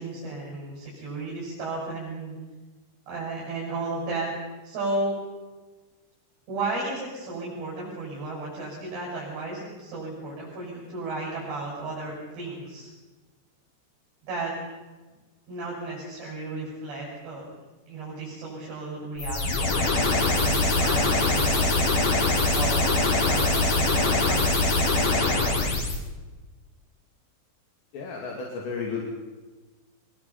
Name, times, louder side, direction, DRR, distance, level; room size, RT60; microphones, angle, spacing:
voice 1, 0.0-2.4 3.1-4.3 4.6-5.1 6.5-12.9 14.3-14.5 15.5-17.4 17.9-19.8 20.3-22.0 22.5-24.7, right 2 dB, 65° right, -5 dB, 9.0 m, -34 dB
sound 1, 19.2-26.0, left 2 dB, 45° left, 4.8 m, -23 dB
voice 2, 27.9-29.0, left 5 dB, 70° left, -2 dB, 4.9 m, -33 dB
24.0 x 23.5 x 5.7 m, 1.3 s
omnidirectional pair, 5.3 m